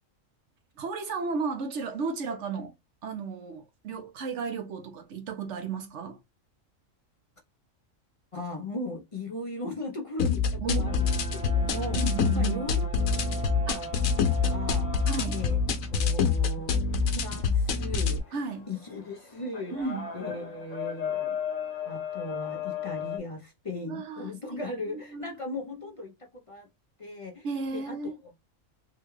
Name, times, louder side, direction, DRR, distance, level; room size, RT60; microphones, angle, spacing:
voice 1, 0.8-2.7 3.0-6.2 10.6-11.0 11.9-12.7 13.7-13.8 15.1-15.4 18.3-18.7 19.7-20.1 23.9-24.6 24.9-25.4 27.4-28.2, right 5 dB, 65° right, 1.0 m, -34 dB
voice 2, 8.3-12.1 12.3-12.9 13.7-15.0 15.3-16.8 17.1-21.4 21.9-26.7 27.0-28.3, left 2 dB, 40° left, 0.5 m, -38 dB
sound 1, 10.2-18.2, left 5 dB, 85° left, 1.1 m, -26 dB
sound 2, 10.8-23.2, left 5 dB, 55° left, 1.2 m, -38 dB
3.6 x 2.3 x 3.1 m
omnidirectional pair, 1.4 m